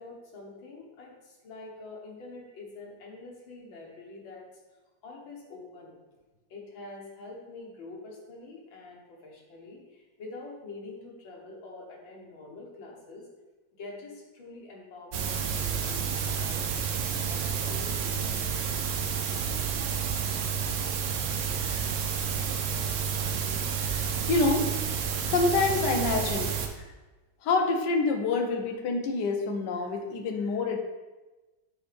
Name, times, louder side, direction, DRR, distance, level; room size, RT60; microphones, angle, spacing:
voice 1, 0.0-6.0 6.5-13.3 13.7-16.6 17.3-19.0, left 3 dB, 90° left, -2 dB, 2.0 m, -46 dB
sound 1, 15.1-26.7, right 7 dB, 80° right, 0.6 m, -30 dB
voice 2, 23.8-24.7 25.2-26.9 27.4-30.8, left 3 dB, 75° left, 4 dB, 1.2 m, -27 dB
7.0 x 4.9 x 3.4 m, 1.2 s
omnidirectional pair, 2.0 m